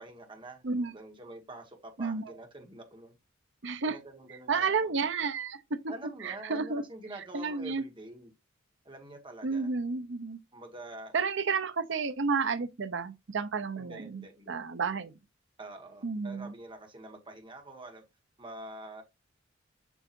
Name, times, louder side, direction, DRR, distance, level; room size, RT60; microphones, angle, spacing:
voice 1, 0.0-3.2 3.9-5.0 5.9-8.3 8.8-9.7 10.5-11.1 13.8-14.6 15.6-18.0 18.4-19.0, right 1 dB, 25° right, 1.6 m, -46 dB
voice 2, 2.0-2.3 3.6-4.0 4.5-5.6 6.2-6.8 7.3-7.8 9.4-10.4 11.1-15.1 16.0-16.5, right 5 dB, 65° right, 0.7 m, -31 dB
7.2 x 6.9 x 2.6 m
head